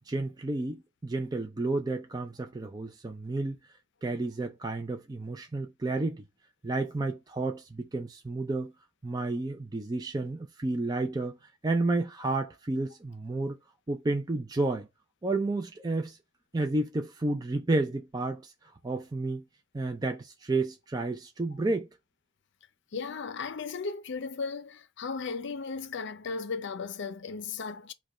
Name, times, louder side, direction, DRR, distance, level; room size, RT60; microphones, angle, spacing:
voice 1, 0.1-3.6 4.0-6.2 6.6-8.7 9.0-13.6 13.9-14.9 15.2-16.2 16.5-19.4 19.7-21.9, right 2 dB, 20° right, 0.4 m, -31 dB
voice 2, 22.9-27.9, left 5 dB, 60° left, 0.5 m, -36 dB
5.1 x 2.2 x 4.6 m
head